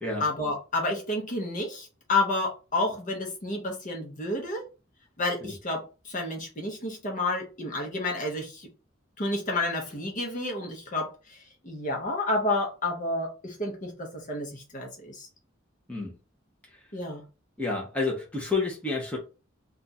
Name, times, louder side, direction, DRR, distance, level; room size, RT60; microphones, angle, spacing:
voice 1, 0.2-4.6 5.2-8.7 9.2-11.4 11.6-15.3 16.9-17.2, left 2 dB, 40° left, 1 dB, 0.9 m, -30 dB
voice 2, 17.6-19.2, left 3 dB, 5° left, -3 dB, 0.7 m, -29 dB
2.5 x 2.3 x 4.0 m, 0.33 s
head